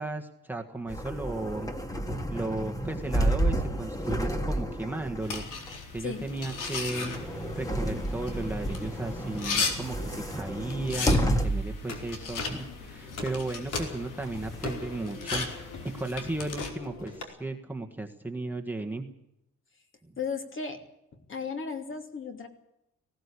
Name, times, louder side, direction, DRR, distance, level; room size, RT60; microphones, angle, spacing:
voice 1, 0.0-1.7 2.3-5.5 5.9-19.1, right 2 dB, 5° right, 2 dB, 1.5 m, -35 dB
sound 1, 0.9-11.8 12.3-12.4 13.9-14.7, right 1 dB, 10° left, 1.8 m, -31 dB
sound 2, 5.2-16.7, left 4 dB, 90° left, 4.3 m, -37 dB
sound 3, 11.9-17.2, left 3 dB, 60° left, 4.5 m, -40 dB
voice 2, 20.2-20.8 21.1-22.5, left 5 dB, 40° left, 5 dB, 3.0 m, -35 dB
19.0 x 17.5 x 8.4 m, 0.83 s
wide cardioid pair, 145°, 31 cm